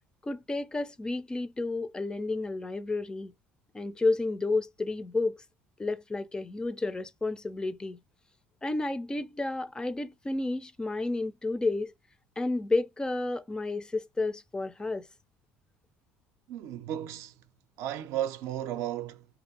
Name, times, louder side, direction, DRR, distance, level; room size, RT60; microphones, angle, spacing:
voice 1, 0.2-3.3 3.7-5.4 5.8-8.0 8.6-11.9 12.4-15.1, left 2 dB, 15° left, 0.4 m, -31 dB
voice 2, 16.5-17.4 17.8-19.3, right 11 dB, 70° right, 0.5 m, -34 dB
2.5 x 2.3 x 2.7 m
supercardioid pair, 105°, 5 cm